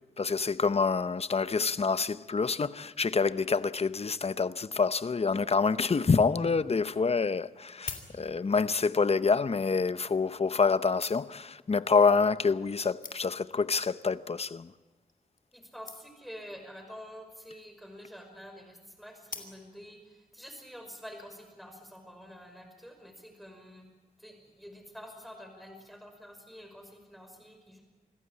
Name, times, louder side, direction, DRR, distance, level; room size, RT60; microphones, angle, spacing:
voice 1, 0.2-14.7, left 4 dB, 45° left, 0.7 m, -27 dB
sound 1, 7.7-8.7 9.6-9.7 10.5-11.5 12.3-12.4 12.7-12.8 13.0-13.5 14.3-14.5 14.8-14.9 15.1-15.2 15.4-15.5 15.9-16.3 17.4-17.8 19.3-19.9 20.5-20.6, left 5 dB, 70° left, 2.6 m, -45 dB
voice 2, 15.5-23.9 24.2-27.8, equal, ahead, 5.5 m, -48 dB
26.0 x 15.5 x 8.6 m
wide cardioid pair, 85°, 15 cm